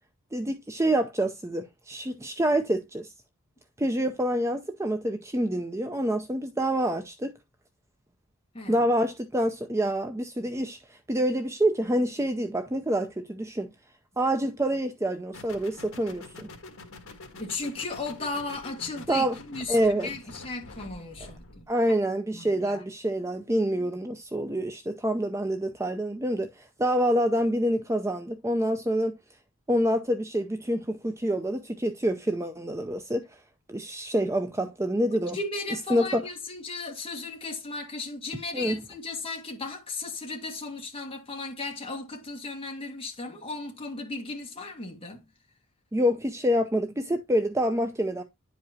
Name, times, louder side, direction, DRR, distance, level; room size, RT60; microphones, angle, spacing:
voice 1, 0.3-3.1 3.8-7.3 8.7-13.7 14.2-16.5 19.1-19.4 19.7-20.1 21.7-26.5 26.8-29.1 29.7-33.2 33.7-35.4 35.9-36.2 38.5-38.8 45.9-48.2, equal, 15° right, 0.5 m, -27 dB
sound 1, 15.3-21.7, left 2 dB, 70° left, 1.7 m, -46 dB
voice 2, 17.4-19.8 20.0-21.7 22.3-22.8 35.1-45.2, left 3 dB, 25° left, 1.8 m, -36 dB
11.0 x 4.9 x 2.7 m
head